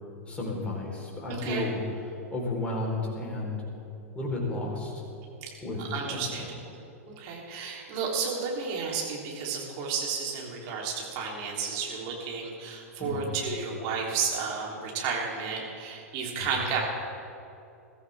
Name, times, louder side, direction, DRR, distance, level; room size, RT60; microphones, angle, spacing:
voice 1, 0.3-1.8 2.3-3.6 4.1-4.9 5.6-6.5 13.0-13.3 16.4-16.5, left 2 dB, 15° left, -2 dB, 4.2 m, -32 dB
voice 2, 1.3-1.7 5.9-6.7 7.2-16.8, right 5 dB, 45° right, -2 dB, 3.5 m, -32 dB
21.5 x 14.0 x 3.6 m, 2.7 s
figure-of-eight pair, 100°, 8 cm